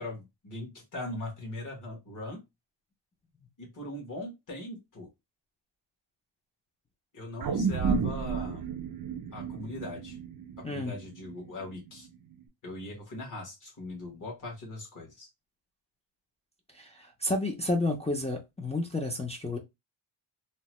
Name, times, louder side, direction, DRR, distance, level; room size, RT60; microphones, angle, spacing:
voice 1, 0.0-2.4 3.6-5.1 7.1-8.7 9.3-10.2 10.7-12.1 12.6-15.3, left 2 dB, 40° left, 1.2 m, -40 dB
sound 1, 7.4-11.9 12.3-12.4, right 5 dB, 45° right, 0.5 m, -32 dB
voice 2, 16.7-19.6, left 2 dB, 15° left, 0.3 m, -31 dB
2.8 x 2.1 x 3.0 m
wide cardioid pair, 160°, 50 cm